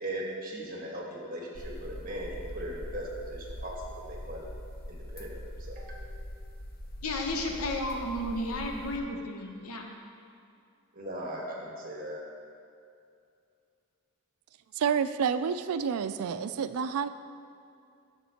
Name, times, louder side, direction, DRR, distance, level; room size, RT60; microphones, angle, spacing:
voice 1, 0.0-4.5 4.9-6.4 10.9-12.2, right 1 dB, 40° right, -2 dB, 1.4 m, -39 dB
sound 1, 1.5-9.0, left 1 dB, 45° left, 0.6 m, -42 dB
voice 2, 7.0-9.9, left 1 dB, 85° left, 2 dB, 0.8 m, -33 dB
voice 3, 14.7-17.1, right 7 dB, 90° right, 11 dB, 0.4 m, -29 dB
11.0 x 7.2 x 2.9 m, 2.5 s
head